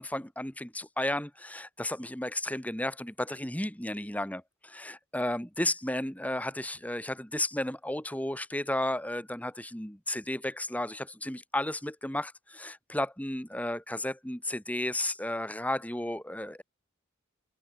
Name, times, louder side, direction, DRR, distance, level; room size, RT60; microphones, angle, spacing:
voice 1, 0.0-16.6, left 1 dB, 5° left, 2.1 m, -33 dB
head